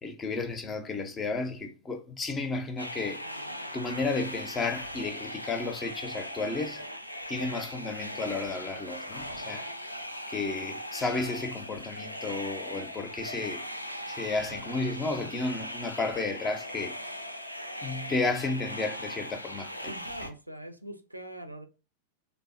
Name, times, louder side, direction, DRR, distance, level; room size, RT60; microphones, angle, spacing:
voice 1, 0.0-3.3 3.7-6.8 7.3-9.7 10.3-13.6 14.1-17.0 17.8-19.9, left 3 dB, 20° left, 0.5 m, -32 dB
sound 1, 2.8-20.3, equal, 85° left, 0.3 m, -39 dB
voice 2, 19.8-21.7, right 1 dB, 90° right, 0.4 m, -42 dB
3.3 x 2.0 x 2.5 m
figure-of-eight pair, 90°, 0 cm